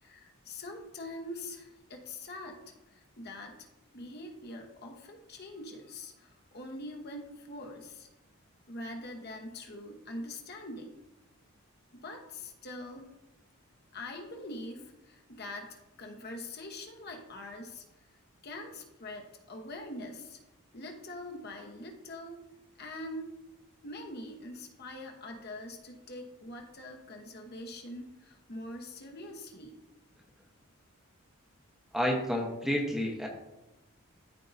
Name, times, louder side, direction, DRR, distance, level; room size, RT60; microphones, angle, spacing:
voice 1, 0.0-3.7 3.9-8.1 8.7-11.0 11.9-13.1 13.9-17.8 18.4-20.4 20.7-22.4 22.8-23.3 23.8-29.8, left 1 dB, 45° left, 2 dB, 1.0 m, -43 dB
voice 2, 31.9-33.3, equal, ahead, 0 dB, 0.9 m, -30 dB
13.5 x 4.6 x 2.6 m, 0.99 s
head